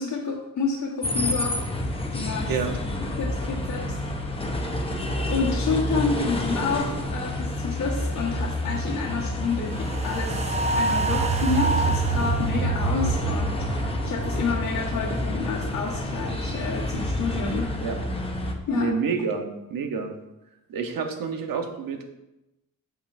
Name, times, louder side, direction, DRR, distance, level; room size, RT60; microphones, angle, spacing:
voice 1, 0.0-2.5 3.2-4.2 5.2-17.7 18.7-18.9, left 4 dB, 65° left, -5 dB, 1.4 m, -29 dB
sound 1, 1.0-18.5, left 1 dB, 15° left, 0.8 m, -29 dB
sound 2, 9.7-16.1 16.4-16.5, right 4 dB, 20° right, 0.7 m, -27 dB
voice 2, 18.7-20.1 20.7-22.0, right 5 dB, 80° right, 5 dB, 1.1 m, -28 dB
8.1 x 7.4 x 2.6 m, 0.94 s
wide cardioid pair, 135°, 34 cm